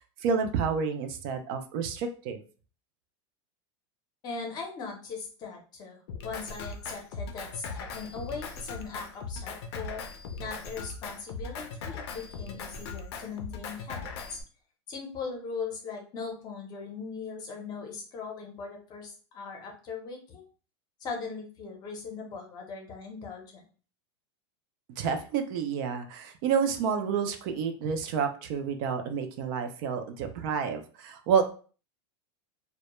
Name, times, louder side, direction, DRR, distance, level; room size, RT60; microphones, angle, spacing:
voice 1, 0.2-2.4 25.0-31.4, right 6 dB, 50° right, 6 dB, 0.4 m, -29 dB
voice 2, 4.2-10.0 10.4-14.4 14.9-20.5 21.0-23.6, left 5 dB, 30° left, 1 dB, 0.7 m, -39 dB
Drum kit, 6.1-14.4, left 4 dB, 70° left, 0.5 m, -39 dB
2.1 x 2.1 x 2.9 m, 0.39 s
supercardioid pair, 145°, 14 cm